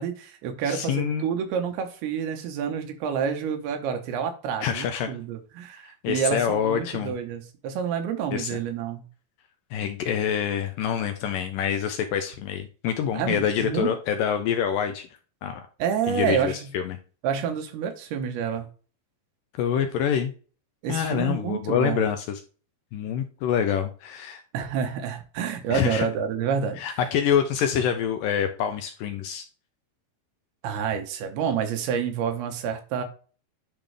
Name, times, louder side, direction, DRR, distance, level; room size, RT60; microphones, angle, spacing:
voice 1, 0.0-9.0 13.1-13.9 15.8-16.5 17.2-18.7 20.8-22.0 24.5-27.0 30.6-33.0, right 7 dB, 80° right, 6 dB, 3.1 m, -28 dB
voice 2, 0.7-1.3 4.6-5.1 5.8-7.2 8.3-8.5 9.7-15.1 15.4-15.6 16.1-17.0 19.6-20.3 20.9-22.4 22.9-24.4 25.7-26.1 26.8-29.4, left 8 dB, 80° left, 6 dB, 2.1 m, -26 dB
10.5 x 3.7 x 3.4 m, 0.37 s
omnidirectional pair, 4.5 m